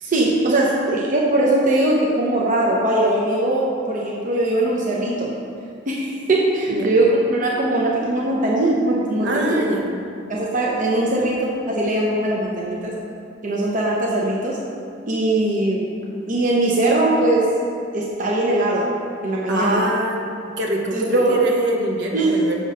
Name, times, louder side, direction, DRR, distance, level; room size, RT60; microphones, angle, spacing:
voice 1, 0.0-5.3 5.9-9.6 10.3-12.9 13.4-14.6 15.1-15.9 16.3-17.5 17.9-18.9 19.2-19.8 20.9-21.4 22.1-22.4, right 1 dB, 45° right, -4 dB, 0.8 m, -20 dB
voice 2, 9.2-9.8 19.5-20.2 20.6-22.5, right 1 dB, 65° right, 0 dB, 1.1 m, -23 dB
6.6 x 6.2 x 5.0 m, 2.5 s
head